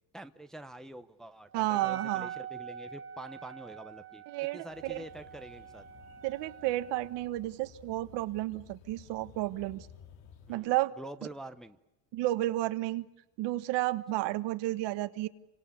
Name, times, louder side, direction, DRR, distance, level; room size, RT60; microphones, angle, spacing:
voice 1, 0.1-4.2 4.5-5.8 10.5-11.8, right 1 dB, ahead, 7 dB, 0.9 m, -46 dB
Wind instrument woodwind instrument, 1.5-7.3, right 8 dB, 25° right, 1.3 m, -45 dB
voice 2, 1.5-2.3 4.3-5.0 6.2-9.9 10.5-10.9 12.1-13.0 13.4-15.3, right 16 dB, 65° right, 12 dB, 1.5 m, -32 dB
sound 1, 4.7-10.5, left 8 dB, 90° left, 3.7 m, -55 dB
29.5 x 25.5 x 7.0 m, 0.92 s
cardioid pair, 155°, 45 cm